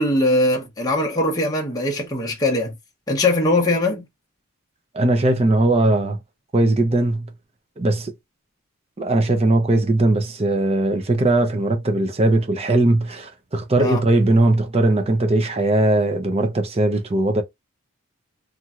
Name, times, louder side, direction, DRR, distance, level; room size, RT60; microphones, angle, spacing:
voice 1, 0.0-2.7 3.1-4.1 13.8-14.0, left 1 dB, 15° left, 0.8 m, -21 dB
voice 2, 4.9-6.2 6.5-7.3 7.8-8.1 9.0-17.4, right 2 dB, 30° right, 0.6 m, -19 dB
2.9 x 2.6 x 2.4 m
head